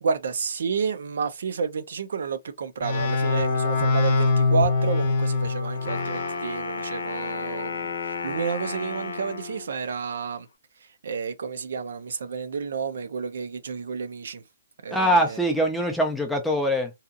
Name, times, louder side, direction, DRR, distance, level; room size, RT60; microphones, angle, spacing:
voice 1, 0.0-10.5 10.8-14.4 14.8-15.4, right 6 dB, 65° right, 0.5 m, -30 dB
sound 1, 2.8-6.4, left 3 dB, 30° left, 0.8 m, -23 dB
Wind instrument woodwind instrument, 5.7-9.7, left 4 dB, 75° left, 0.7 m, -32 dB
voice 2, 14.9-16.9, equal, ahead, 0.4 m, -23 dB
2.7 x 2.4 x 2.4 m
hypercardioid pair, 175°, 0 cm